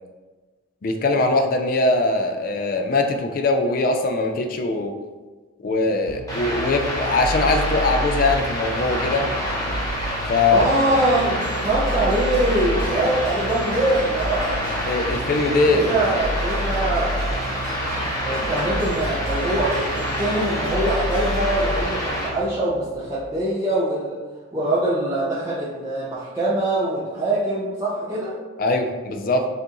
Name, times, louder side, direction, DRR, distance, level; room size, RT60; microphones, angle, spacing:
voice 1, 0.8-5.0 5.6-9.3 10.3-10.7 14.9-16.0 28.6-29.5, left 2 dB, 40° left, 4 dB, 0.3 m, -21 dB
sound 1, 6.1-23.4, right 1 dB, 85° right, 0.3 m, -31 dB
sound 2, 6.3-22.3, equal, 15° left, 0.8 m, -28 dB
voice 2, 10.5-11.4 11.6-14.7 15.5-17.5 18.2-24.2 24.5-28.4, right 1 dB, 15° right, -11 dB, 0.5 m, -23 dB
sound 3, 10.6-22.9, left 1 dB, 65° left, 1.0 m, -41 dB
4.5 x 2.5 x 2.9 m, 1.3 s
head